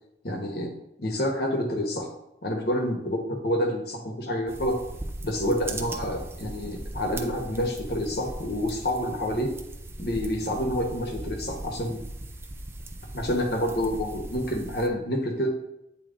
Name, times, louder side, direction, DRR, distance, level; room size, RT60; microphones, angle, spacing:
voice 1, 0.2-0.7 1.0-2.1 2.4-4.7 5.2-9.5 10.0-12.0 13.1-15.5, equal, 55° left, 2 dB, 1.1 m, -28 dB
sound 1, 4.5-14.9, right 1 dB, 15° right, 0.4 m, -39 dB
8.6 x 3.1 x 3.7 m, 0.87 s
head